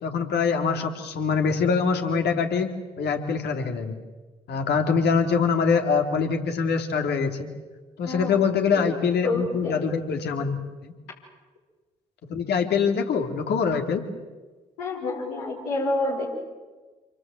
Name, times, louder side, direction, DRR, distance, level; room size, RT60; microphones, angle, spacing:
voice 1, 0.0-2.7 3.0-4.0 4.5-7.5 8.0-10.6 10.8-10.9 12.3-14.0, left 5 dB, 60° left, 5 dB, 3.2 m, -24 dB
voice 2, 8.0-8.3 8.7-8.9 9.2-9.8 14.8-16.3, left 2 dB, 80° left, -3 dB, 5.1 m, -28 dB
28.0 x 24.0 x 7.8 m, 1.3 s
figure-of-eight pair, 40°, 19 cm